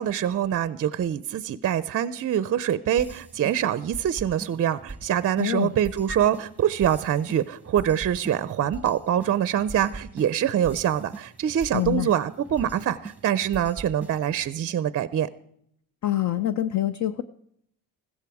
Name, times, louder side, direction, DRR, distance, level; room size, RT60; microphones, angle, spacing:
voice 1, 0.0-15.3, right 10 dB, 40° right, 15 dB, 0.5 m, -25 dB
sound 1, 3.0-14.5, right 3 dB, 5° right, 0.9 m, -42 dB
voice 2, 5.4-5.7 11.7-12.1 16.0-17.2, left 13 dB, 50° left, 12 dB, 0.6 m, -25 dB
15.5 x 14.0 x 4.8 m, 0.71 s
cardioid pair, 120°, 37 cm